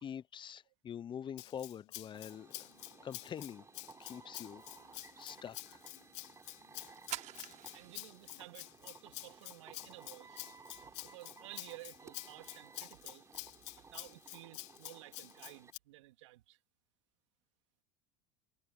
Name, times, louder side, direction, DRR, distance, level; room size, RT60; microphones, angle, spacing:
voice 1, 0.0-2.7 3.0-3.7 4.0-5.8, left 8 dB, 30° left, 0.8 m, -46 dB
Rattle (instrument), 1.4-15.8, left 21 dB, 75° left, 2.2 m, -49 dB
sound 1, 2.1-15.7, right 4 dB, 20° right, 4.0 m, -58 dB
sound 2, 4.8-14.3, right 14 dB, 50° right, 6.4 m, -54 dB
voice 2, 7.7-10.5 11.0-13.2 13.8-16.6, right 19 dB, 80° right, 3.5 m, -54 dB
hypercardioid pair, 95°, 15 cm